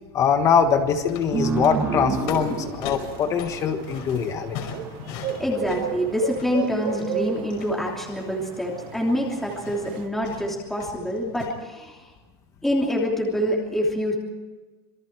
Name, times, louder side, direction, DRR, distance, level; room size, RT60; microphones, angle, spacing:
voice 1, 0.1-4.6, left 7 dB, 25° left, 7 dB, 1.4 m, -22 dB
sound 1, 0.8-11.5, left 7 dB, 50° left, 5.5 m, -41 dB
sound 2, 1.3-4.5, right 4 dB, 15° right, 2.3 m, -28 dB
sound 3, 2.1-10.1, right 11 dB, 40° right, 1.2 m, -35 dB
voice 2, 5.4-12.1 12.6-14.1, equal, ahead, -3 dB, 3.1 m, -26 dB
27.5 x 23.0 x 4.7 m, 1.3 s
supercardioid pair, 170°, 13 cm